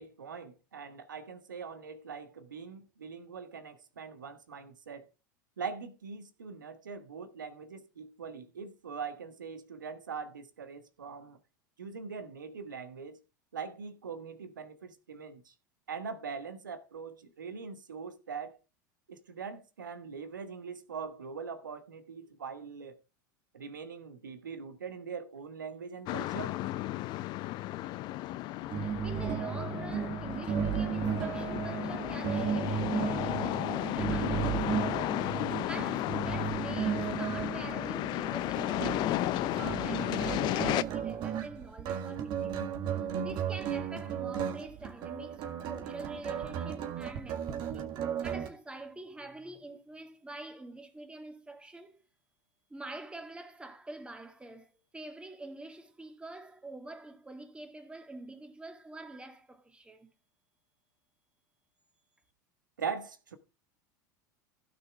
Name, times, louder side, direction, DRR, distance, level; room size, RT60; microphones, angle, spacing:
voice 1, 0.0-5.1 5.6-11.4 11.8-13.2 13.5-15.5 15.9-18.6 19.1-23.0 23.5-26.6 62.8-63.4, right 5 dB, 80° right, 1.5 m, -42 dB
sound 1, 26.1-40.8, left 17 dB, 45° left, 0.6 m, -34 dB
voice 2, 28.7-35.0 35.7-42.6 43.0-52.0 52.7-60.1, right 2 dB, 10° right, 2.5 m, -46 dB
sound 2, 28.7-48.5, right 8 dB, 45° right, 1.9 m, -35 dB
16.0 x 6.4 x 3.5 m
hypercardioid pair, 80°, 10 cm